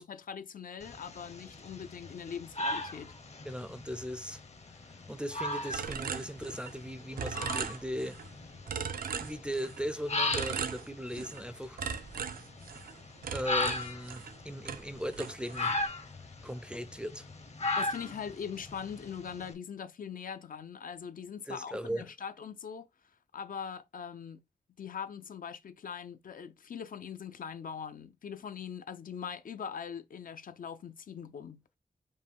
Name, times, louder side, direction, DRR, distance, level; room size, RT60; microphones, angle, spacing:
voice 1, 0.0-3.1 17.8-22.9 23.3-24.4 24.8-31.6, left 7 dB, 70° left, 0.5 m, -42 dB
sound 1, 0.8-19.5, left 2 dB, 50° left, 0.8 m, -38 dB
voice 2, 3.4-4.4 5.1-8.2 9.2-11.8 13.3-15.8 16.4-17.3 21.5-22.1, equal, 5° right, 0.4 m, -38 dB
sound 2, 5.7-6.9 7.2-8.3 8.7-9.9 10.3-11.4 11.8-14.4 14.7-15.8, right 7 dB, 80° right, 0.4 m, -38 dB
5.3 x 2.2 x 3.4 m
wide cardioid pair, 120°, 15 cm